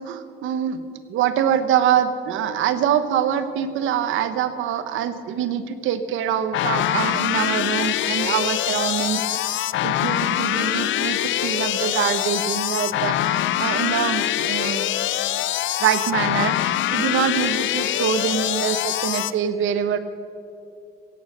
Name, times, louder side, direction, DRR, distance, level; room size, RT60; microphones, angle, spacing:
voice 1, 0.0-15.2 15.8-20.0, right 9 dB, 85° right, 12 dB, 0.9 m, -25 dB
sound 1, 6.5-19.3, left 13 dB, 75° left, 0.5 m, -24 dB
17.0 x 8.4 x 6.5 m, 2.6 s
cardioid pair, 90°, 20 cm